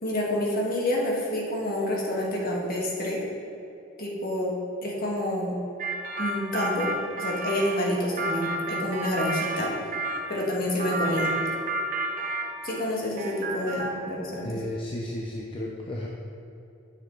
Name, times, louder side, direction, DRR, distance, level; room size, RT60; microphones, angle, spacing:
voice 1, 0.0-3.2 4.0-4.5 4.8-5.5 6.2-6.9 7.2-9.7 10.3-11.3 12.6-14.5, left 1 dB, 45° left, -3 dB, 1.6 m, -28 dB
sound 1, 5.8-10.3 10.8-12.9 13.2-14.1, right 2 dB, 40° right, 0.7 m, -31 dB
voice 2, 14.4-16.1, left 1 dB, 25° left, -3 dB, 0.6 m, -33 dB
9.4 x 6.6 x 3.9 m, 2.8 s
head